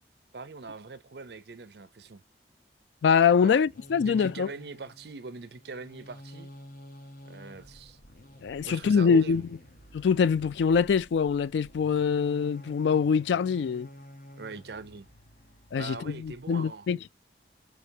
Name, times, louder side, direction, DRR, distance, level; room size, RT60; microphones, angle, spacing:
voice 1, 0.3-2.2 3.4-3.6 4.0-6.5 7.3-8.0 8.6-9.5 14.4-15.1 15.8-16.9, right 4 dB, 65° right, 0.6 m, -42 dB
voice 2, 3.0-4.5 8.4-9.4 9.9-13.9 15.7-17.0, left 6 dB, 80° left, 0.3 m, -24 dB
sound 1, 3.4-16.4, left 1 dB, 50° left, 1.2 m, -50 dB
4.9 x 3.3 x 2.8 m
head